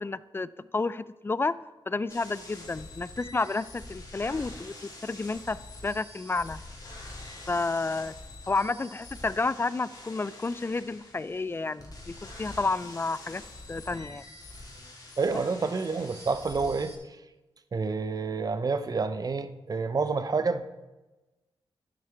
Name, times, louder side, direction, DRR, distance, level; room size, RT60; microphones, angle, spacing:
voice 1, 0.0-1.5 1.9-6.6 7.5-8.1 8.5-13.4 13.7-14.2, left 3 dB, 25° left, 17 dB, 0.3 m, -31 dB
sound 1, 2.1-17.0, left 2 dB, 40° left, 2.4 m, -46 dB
voice 2, 15.2-16.9 17.7-20.7, right 4 dB, 40° right, 11 dB, 0.7 m, -28 dB
11.0 x 6.5 x 4.5 m, 1.1 s
cardioid pair, 70°, 9 cm